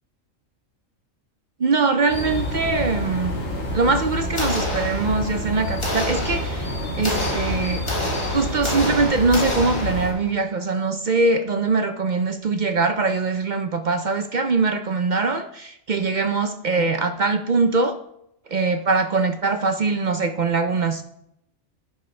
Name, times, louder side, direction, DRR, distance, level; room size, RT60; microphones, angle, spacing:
voice 1, 1.6-3.4 3.7-7.8 8.3-17.9 18.5-21.0, right 3 dB, 55° right, 8 dB, 0.5 m, -22 dB
sound 1, 2.1-10.1, left 1 dB, 70° left, 2.7 m, -28 dB
sound 2, 4.4-5.4 5.8-10.3, left 1 dB, 20° left, 1.6 m, -29 dB
10.0 x 6.9 x 3.2 m, 0.74 s
omnidirectional pair, 1.4 m